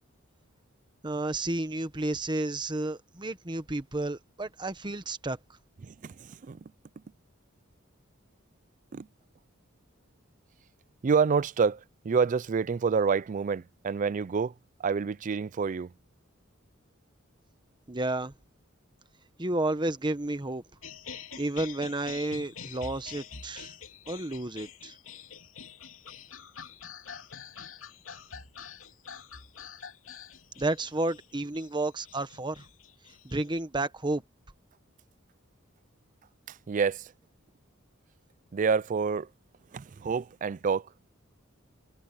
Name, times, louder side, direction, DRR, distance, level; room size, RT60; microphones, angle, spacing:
voice 1, 1.0-5.4 17.9-18.3 19.4-20.6 21.4-23.7 24.1-25.0 30.6-32.6 33.2-34.2, right 2 dB, 25° right, 1.2 m, -31 dB
voice 2, 5.8-6.6 8.9-9.1 11.0-14.5 14.8-15.9 36.5-37.1 38.5-39.3 39.7-40.9, right 5 dB, 40° right, 0.4 m, -28 dB
sound 1, 20.8-33.6, left 6 dB, 80° left, 2.8 m, -46 dB
head